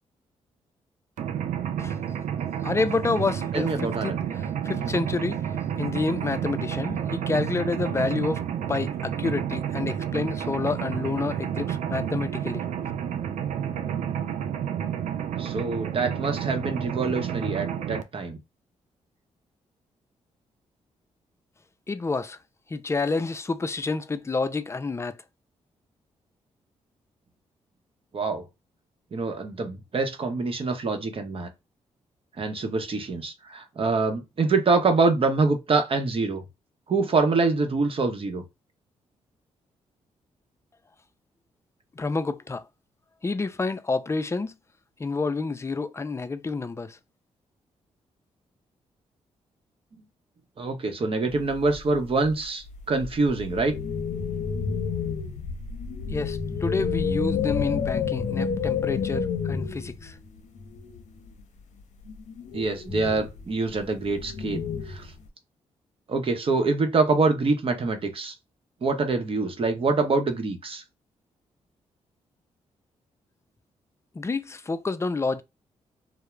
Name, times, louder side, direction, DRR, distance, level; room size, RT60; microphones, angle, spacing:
Mechanisms, 1.2-18.0, right 9 dB, 75° right, 0.4 m, -30 dB
voice 1, 2.6-12.7 21.9-22.4 22.7-25.2 41.9-42.7 43.2-44.6 45.0-47.0 56.1-60.2 74.1-75.4, left 3 dB, 20° left, 0.4 m, -29 dB
voice 2, 3.5-4.1 15.4-18.4 28.1-28.4 29.1-31.5 32.4-36.4 36.9-38.4 50.6-53.8 62.5-65.1 66.1-68.3 68.8-70.8, right 3 dB, 45° right, 0.7 m, -25 dB
sound 1, 51.3-61.4 62.0-65.3, left 6 dB, 70° left, 0.6 m, -30 dB
2.3 x 2.0 x 3.0 m
supercardioid pair, 60°, 13 cm